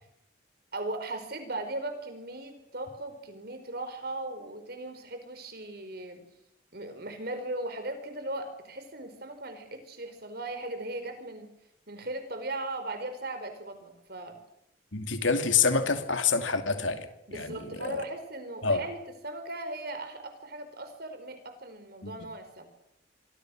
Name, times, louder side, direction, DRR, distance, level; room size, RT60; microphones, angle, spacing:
voice 1, 0.7-6.2 6.7-11.5 11.9-14.4 17.3-22.6, right 2 dB, 50° right, 8 dB, 4.8 m, -38 dB
voice 2, 14.9-18.0 18.6-18.8 22.0-22.1, left 5 dB, 80° left, 7 dB, 2.9 m, -27 dB
26.0 x 25.0 x 6.5 m, 0.80 s
head